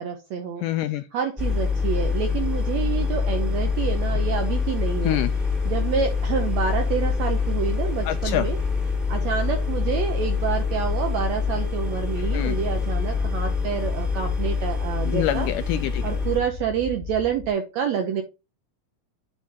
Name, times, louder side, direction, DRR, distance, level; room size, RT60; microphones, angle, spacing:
voice 1, 0.0-0.6 1.1-5.2 5.6-8.6 9.1-15.5 16.0-18.2, right 7 dB, 75° right, 1.6 m, -28 dB
voice 2, 0.6-1.0 5.0-5.3 8.1-8.5 12.3-12.6 15.1-16.0, left 13 dB, 80° left, 1.9 m, -25 dB
sound 1, 1.4-16.4, left 5 dB, ahead, 1.3 m, -25 dB
sound 2, 6.7-17.5, left 4 dB, 35° left, 1.3 m, -38 dB
9.5 x 3.8 x 4.1 m
omnidirectional pair, 4.1 m